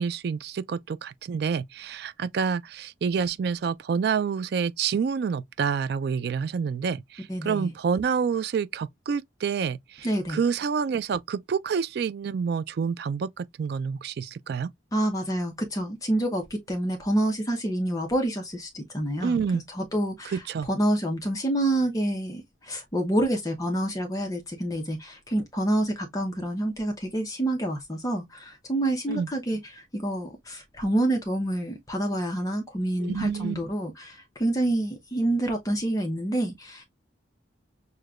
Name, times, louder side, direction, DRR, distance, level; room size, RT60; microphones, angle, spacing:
voice 1, 0.0-14.7 19.2-19.6 20.3-20.7 29.1-29.3 33.0-33.6, right 6 dB, 55° right, 0.3 m, -28 dB
voice 2, 7.3-7.7 10.0-10.4 14.9-36.8, right 1 dB, 20° left, 0.7 m, -28 dB
6.4 x 2.2 x 2.3 m
head